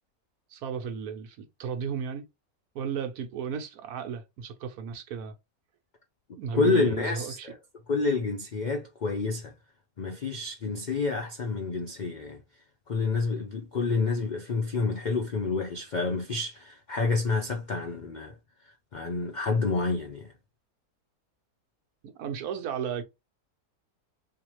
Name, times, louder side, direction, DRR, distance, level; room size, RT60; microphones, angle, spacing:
voice 1, 0.5-2.2 2.7-5.3 6.4-7.5 22.2-23.0, right 7 dB, 85° right, 1.3 m, -34 dB
voice 2, 6.5-7.5 7.9-9.5 10.0-12.4 12.9-18.3 18.9-20.3, left 4 dB, 75° left, 0.4 m, -28 dB
3.6 x 2.9 x 3.0 m
omnidirectional pair, 1.6 m